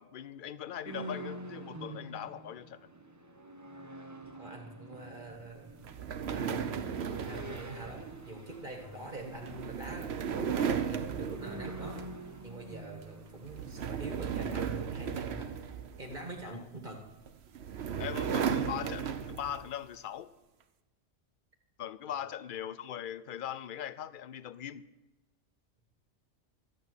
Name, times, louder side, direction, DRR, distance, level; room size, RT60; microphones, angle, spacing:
voice 1, 0.0-2.9 16.5-16.6 18.0-20.3 21.8-24.8, left 10 dB, 60° left, 16 dB, 0.5 m, -40 dB
sound 1, 0.8-15.6, right 2 dB, 15° right, 0.8 m, -47 dB
voice 2, 4.3-5.7 6.3-6.9 7.3-12.0 12.4-15.5 16.0-17.0, right 2 dB, 40° right, 3 dB, 1.7 m, -45 dB
sound 2, 5.8-12.4 12.7-13.0 13.4-16.4 17.3-19.7, right 7 dB, 60° right, 1.0 m, -36 dB
13.0 x 9.0 x 6.3 m, 1.1 s
omnidirectional pair, 1.3 m